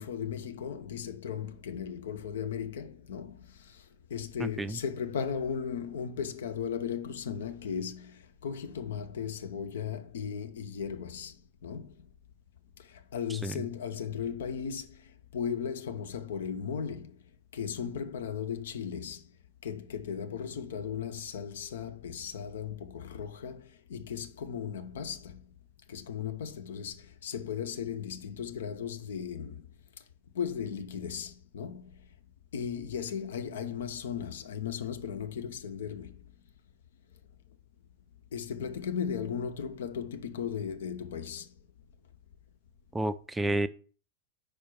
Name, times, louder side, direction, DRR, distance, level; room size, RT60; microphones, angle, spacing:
voice 1, 0.0-3.4 4.1-11.3 11.6-11.9 13.1-14.9 15.3-17.1 17.5-19.2 19.6-25.4 25.9-29.6 30.3-31.9 32.5-36.2 38.3-41.5, left 7 dB, 60° left, 0.7 m, -36 dB
voice 2, 4.4-4.8 13.4-13.5 42.9-43.7, right 2 dB, 10° right, 0.5 m, -30 dB
5.0 x 4.4 x 5.9 m
figure-of-eight pair, 90°, 0 cm